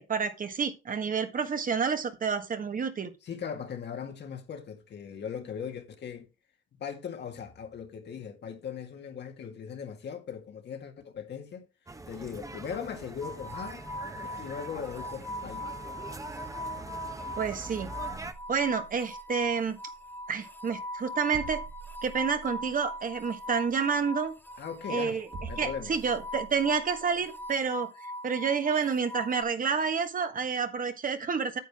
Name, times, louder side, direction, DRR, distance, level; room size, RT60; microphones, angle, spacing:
voice 1, 0.0-3.1 17.4-17.9 18.5-19.8 20.3-21.6 22.0-24.3 24.9-31.6, right 6 dB, 45° right, 1.5 m, -29 dB
voice 2, 3.2-6.3 6.8-11.7 12.1-13.8 14.2-15.7 24.6-25.2 25.5-25.9, left 7 dB, 60° left, 1.8 m, -39 dB
sound 1, 11.9-18.3, right 2 dB, 15° right, 1.1 m, -43 dB
sound 2, 13.2-29.4, equal, 10° left, 1.3 m, -40 dB
sound 3, 18.1-27.7, right 5 dB, 60° right, 2.9 m, -48 dB
9.2 x 8.1 x 3.6 m
cardioid pair, 90°, 20 cm